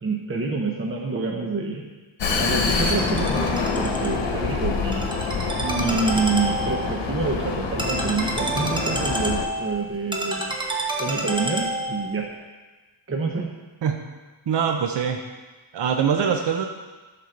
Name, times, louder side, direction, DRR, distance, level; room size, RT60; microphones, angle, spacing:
voice 1, 0.0-1.8 2.4-5.1 5.6-10.5 11.0-12.3 13.1-13.5, right 4 dB, 25° right, 0 dB, 0.9 m, -27 dB
Vehicle, 2.2-9.5, left 4 dB, 65° left, 1.1 m, -26 dB
Ringtone, 2.6-12.2, right 1 dB, 10° right, 1.0 m, -30 dB
voice 2, 14.5-15.2 15.7-16.6, right 7 dB, 60° right, 4 dB, 0.7 m, -23 dB
12.5 x 4.3 x 6.5 m, 1.3 s
wide cardioid pair, 165°, 47 cm